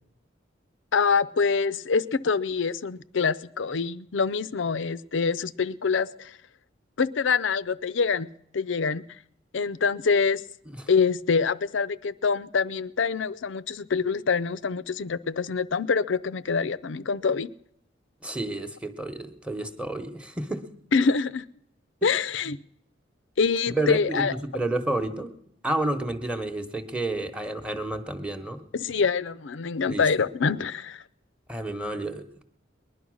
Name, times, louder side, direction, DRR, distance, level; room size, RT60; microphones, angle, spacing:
voice 1, 0.9-6.3 7.0-8.3 8.5-9.0 9.5-10.4 10.9-17.5 20.9-21.4 22.0-22.6 23.4-24.3 28.7-31.0, left 5 dB, 70° left, 17 dB, 0.5 m, -25 dB
voice 2, 18.2-20.7 22.0-22.1 23.7-25.3 25.6-28.7 29.9-30.0 31.5-32.4, right 2 dB, 5° right, 7 dB, 1.0 m, -30 dB
20.5 x 11.0 x 6.3 m, 0.73 s
head